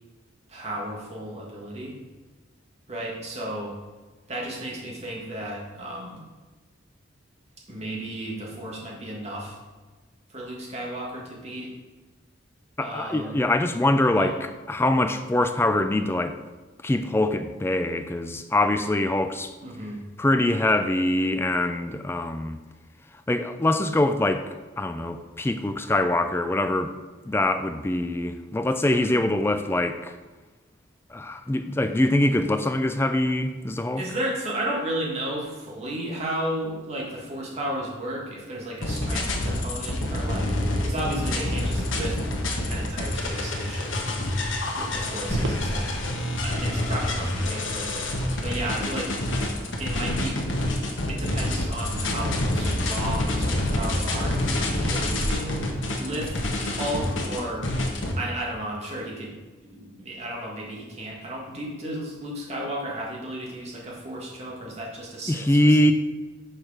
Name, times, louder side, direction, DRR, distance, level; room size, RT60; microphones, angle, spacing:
voice 1, 0.5-1.9 2.9-3.8 4.3-6.3 7.7-9.6 10.3-11.7 12.8-13.5 14.1-14.4 19.6-20.0 28.8-29.2 34.0-42.2 42.5-44.0 44.7-45.9 46.4-48.1 48.4-49.1 49.8-50.4 51.1-55.6 56.0-56.4 56.7-57.7 58.1-59.3 59.6-65.8, right 1 dB, 35° right, -3 dB, 1.6 m, -33 dB
voice 2, 12.8-16.4 16.8-19.5 20.2-22.6 23.3-24.5 24.8-26.9 27.2-30.1 31.1-34.0 65.3-65.9, left 1 dB, 10° left, 8 dB, 0.3 m, -23 dB
sound 1, 38.8-58.1, left 1 dB, 80° left, 1.1 m, -27 dB
sound 2, 45.3-55.3, right 1 dB, 70° right, 0.9 m, -38 dB
6.4 x 4.5 x 4.9 m, 1.3 s
head